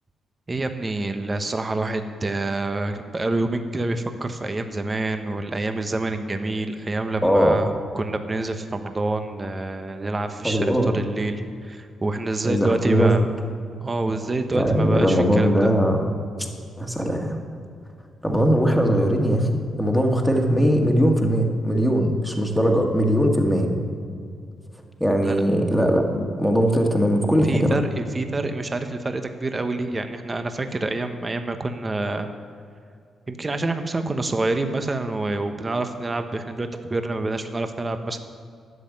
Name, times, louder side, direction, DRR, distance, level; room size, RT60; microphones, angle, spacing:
voice 1, 0.5-13.3 13.8-15.7 25.2-25.4 27.4-32.3 33.3-38.2, right 2 dB, 25° right, 7 dB, 0.9 m, -27 dB
voice 2, 7.2-7.6 10.4-11.0 12.4-13.1 14.5-16.0 16.8-17.4 18.2-23.7 25.0-27.7, equal, ahead, 2 dB, 1.8 m, -20 dB
11.0 x 7.6 x 9.6 m, 2.3 s
cardioid pair, 95°, 0 cm